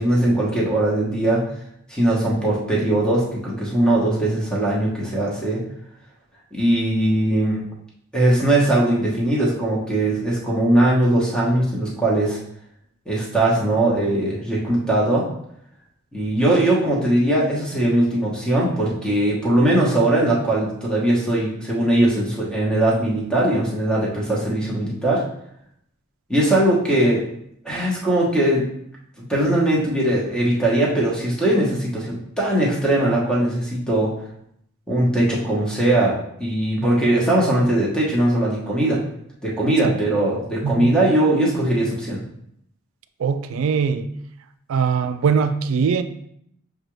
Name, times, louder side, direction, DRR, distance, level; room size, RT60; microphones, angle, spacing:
voice 1, 0.0-1.4 1.9-5.6 6.5-7.6 8.1-12.4 13.1-15.3 16.1-25.2 26.3-27.2 27.6-28.7 29.2-34.1 34.9-39.0 39.4-42.2, right 1 dB, 5° left, -5 dB, 1.0 m, -20 dB
voice 2, 40.6-40.9 43.2-44.1 44.7-46.0, right 6 dB, 70° right, 10 dB, 0.3 m, -21 dB
6.3 x 2.4 x 3.1 m, 0.71 s
head